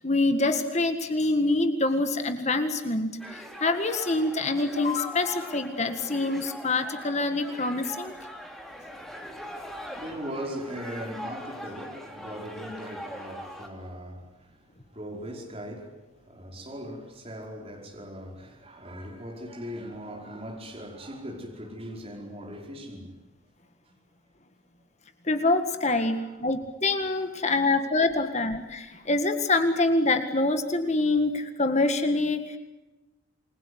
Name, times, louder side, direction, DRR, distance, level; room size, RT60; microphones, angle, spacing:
voice 1, 0.0-8.1 25.2-32.6, left 2 dB, 30° left, 1.8 m, -25 dB
sound 1, 3.2-13.7, equal, ahead, 3.2 m, -42 dB
voice 2, 9.1-23.2 23.8-24.0 25.8-26.3 27.2-27.6, equal, 30° right, 5.1 m, -40 dB
28.5 x 21.5 x 8.1 m
head